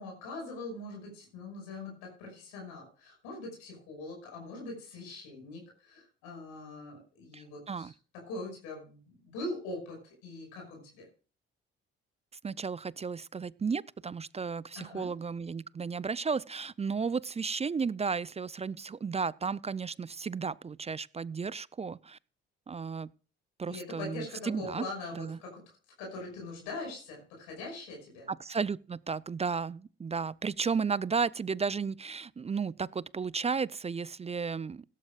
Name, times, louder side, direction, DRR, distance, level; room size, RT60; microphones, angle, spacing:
voice 1, 0.0-11.1 14.8-15.1 23.7-28.3, left 2 dB, 80° left, 5.7 m, -42 dB
voice 2, 7.3-7.9 12.4-22.2 22.7-23.1 23.6-24.9 25.1-25.4 28.3-34.8, right 5 dB, 20° right, 0.4 m, -34 dB
16.5 x 13.0 x 2.4 m
hypercardioid pair, 45°, 29 cm